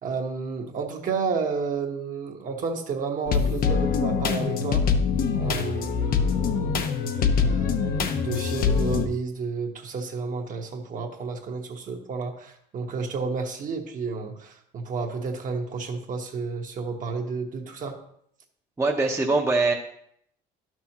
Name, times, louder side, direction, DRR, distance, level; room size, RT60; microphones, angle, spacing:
voice 1, 0.0-4.8 5.4-6.9 7.4-18.0, right 4 dB, 50° right, 2 dB, 1.2 m, -31 dB
sound 1, 3.3-9.1, left 6 dB, 60° left, 0.8 m, -24 dB
voice 2, 18.8-19.7, right 3 dB, 15° right, 1 dB, 0.8 m, -22 dB
11.5 x 6.1 x 2.9 m, 0.69 s
cardioid pair, 110°, 17 cm